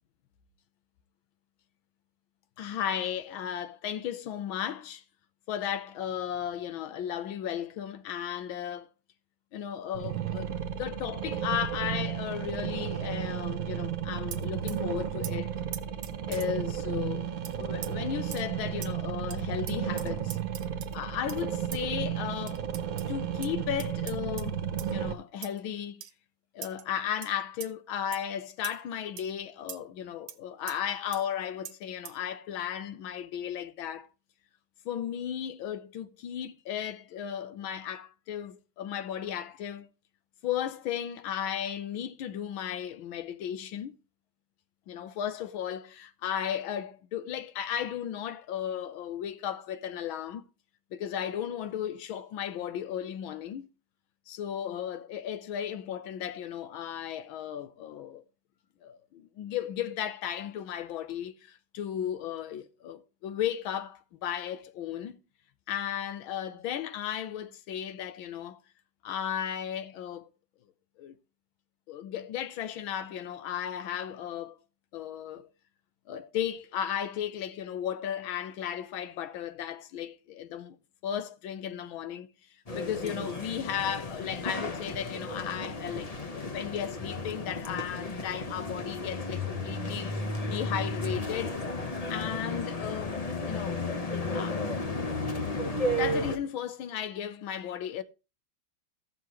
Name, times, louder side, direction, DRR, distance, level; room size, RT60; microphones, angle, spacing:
voice 1, 2.6-5.0 5.5-8.9 9.5-15.5 16.3-17.3 17.6-20.4 20.9-22.6 23.1-26.0 26.5-34.1 34.8-39.9 40.4-44.0 44.9-50.4 50.9-53.7 54.3-58.2 58.8-65.2 65.7-68.6 69.0-70.3 71.0-71.1 71.9-74.6 74.9-75.5 76.1-80.8 81.0-82.3 82.7-90.2 90.5-91.6 92.1-93.2 93.5-93.8 94.3-94.9 95.6-98.0, left 9 dB, 80° left, 1.6 m, -35 dB
sound 1, 9.9-25.1, right 9 dB, 50° right, 1.3 m, -33 dB
sound 2, 14.3-14.8 15.2-15.3 15.7-16.5 17.4-17.5 17.8-17.9 18.3-18.4 18.8-18.9 19.3-19.4 19.7-21.0 21.3-21.4 21.7-21.8 22.5-23.1 23.4-23.5 23.8-24.5 24.8-24.9 25.4-25.6 26.0-26.1 26.6-26.8 27.2-27.3 27.6-27.7 28.1-28.2 28.6-28.8 29.2-29.3 29.7-29.8 30.3-30.4 30.7-30.8 31.1-31.2 31.6-31.7 32.0-32.2, right 10 dB, 80° right, 1.6 m, -41 dB
sound 3, 82.7-96.4, left 2 dB, 30° left, 0.7 m, -33 dB
15.5 x 6.6 x 3.1 m
omnidirectional pair, 2.2 m